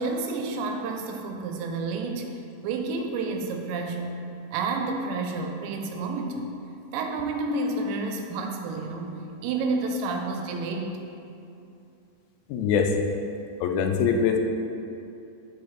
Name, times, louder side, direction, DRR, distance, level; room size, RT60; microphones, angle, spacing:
voice 1, 0.0-2.3 2.6-4.2 4.5-6.5 6.9-11.0, right 3 dB, 80° right, 3 dB, 2.8 m, -30 dB
voice 2, 12.5-12.9 13.6-14.4, left 6 dB, 90° left, 4 dB, 3.0 m, -23 dB
10.5 x 5.1 x 3.1 m, 2.6 s
omnidirectional pair, 5.3 m